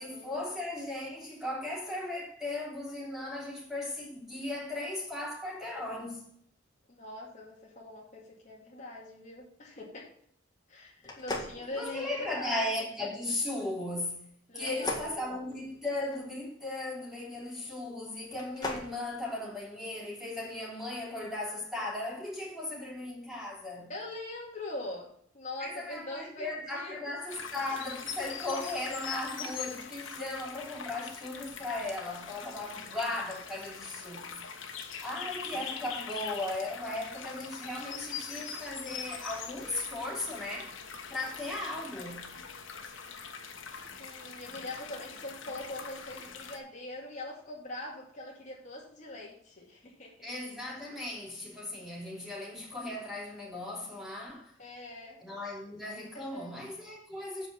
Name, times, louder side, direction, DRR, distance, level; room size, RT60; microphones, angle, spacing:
voice 1, 0.0-6.3 11.7-14.2 14.5-23.9 25.6-34.4 35.0-40.7 41.1-42.3 50.2-54.5 55.2-57.5, left 2 dB, 5° right, 3.2 m, -37 dB
voice 2, 6.9-10.1 10.7-12.7 14.5-15.4 23.9-27.1 35.7-35.9 44.0-50.1 52.1-52.3 54.6-55.2 56.1-56.5, left 1 dB, 40° left, 2.2 m, -42 dB
sound 1, 11.0-12.4 14.6-16.2 18.2-18.9, left 2 dB, 20° left, 1.9 m, -38 dB
sound 2, 27.3-46.6, left 6 dB, 90° left, 1.3 m, -43 dB
8.3 x 5.4 x 6.7 m
head